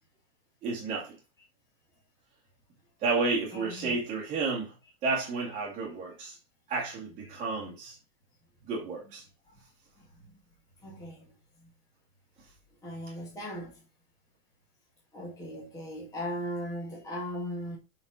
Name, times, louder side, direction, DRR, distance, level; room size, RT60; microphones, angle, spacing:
voice 1, 0.6-1.2 3.0-4.8 5.0-6.4 6.7-8.0 8.7-9.2, right 4 dB, 15° right, 2.1 m, -31 dB
voice 2, 3.5-4.0 9.0-9.1 10.8-11.2 12.8-13.8 15.1-17.8, equal, 10° left, 2.0 m, -38 dB
5.9 x 5.8 x 4.9 m
supercardioid pair, 170°, 46 cm